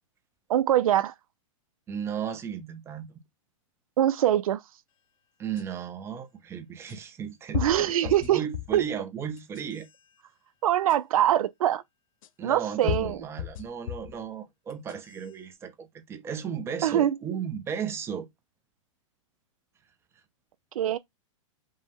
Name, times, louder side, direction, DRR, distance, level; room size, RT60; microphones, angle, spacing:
voice 1, 0.5-1.1 4.0-4.6 7.5-8.4 8.7-8.8 10.6-11.8 12.4-13.2 16.8-17.2 20.8-21.0, right 11 dB, 85° right, 0.4 m, -23 dB
voice 2, 1.9-3.2 5.4-9.9 12.4-18.3, right 7 dB, 15° right, 0.5 m, -35 dB
sound 1, 5.6-5.7 6.9-7.0 7.5-8.8 9.4-9.9 10.9-11.0 12.2-12.3 12.9-14.2 14.7-15.3, left 12 dB, 75° left, 0.5 m, -34 dB
5.3 x 2.1 x 3.3 m
hypercardioid pair, 145°, 17 cm